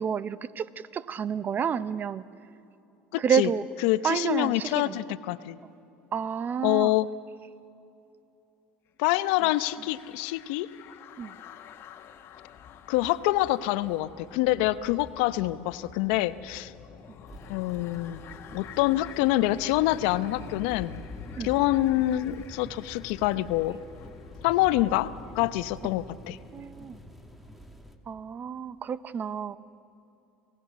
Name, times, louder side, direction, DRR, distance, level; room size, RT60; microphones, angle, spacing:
voice 1, 0.0-2.3 3.2-3.6 4.0-5.0 6.1-6.9 11.2-11.3 21.4-21.5 26.5-27.0 28.1-29.6, right 7 dB, 35° right, 16 dB, 0.8 m, -29 dB
voice 2, 3.1-3.5 3.8-5.6 6.6-7.1 9.0-10.7 12.9-16.7 17.5-18.2 18.5-20.9 21.4-23.8 24.4-26.4, left 16 dB, 75° left, 14 dB, 0.8 m, -26 dB
sound 1, 9.0-26.1, left 8 dB, 50° left, 1.5 m, -48 dB
sound 2, 17.3-28.0, right 1 dB, ahead, 2.1 m, -46 dB
26.5 x 18.0 x 8.2 m, 2.8 s
supercardioid pair, 90°, 5 cm